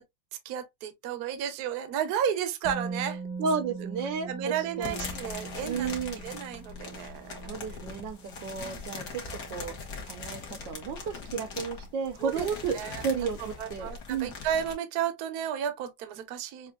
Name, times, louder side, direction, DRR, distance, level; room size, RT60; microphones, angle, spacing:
voice 1, 0.4-3.2 3.8-3.9 4.3-5.9 6.2-7.6 8.6-8.8 12.2-12.5 12.7-13.0 13.6-16.7, right 9 dB, 65° right, 1.2 m, -33 dB
Musical instrument, 2.6-10.5 10.8-11.0, right 4 dB, 15° right, 0.8 m, -42 dB
voice 2, 3.4-5.0 5.7-6.2 7.5-9.7 10.1-10.4 10.6-12.8 13.0-14.3, right 6 dB, 85° right, 1.6 m, -33 dB
sound 1, 4.8-14.7, left 4 dB, 55° left, 1.7 m, -41 dB
6.4 x 2.7 x 2.3 m
omnidirectional pair, 2.0 m